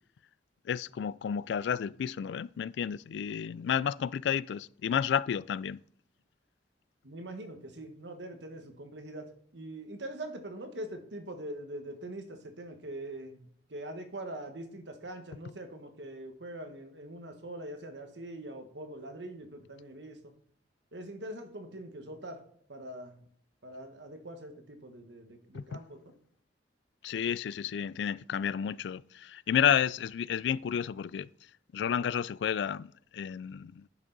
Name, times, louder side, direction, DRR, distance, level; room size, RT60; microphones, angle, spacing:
voice 1, 0.7-5.8 25.5-25.6 27.0-31.3 31.7-32.9 33.1-33.8, left 8 dB, 80° left, 0.3 m, -31 dB
voice 2, 7.0-20.3 20.9-22.4 22.7-23.2 23.6-26.1, right 1 dB, 85° right, 1.4 m, -43 dB
10.5 x 6.2 x 4.0 m
head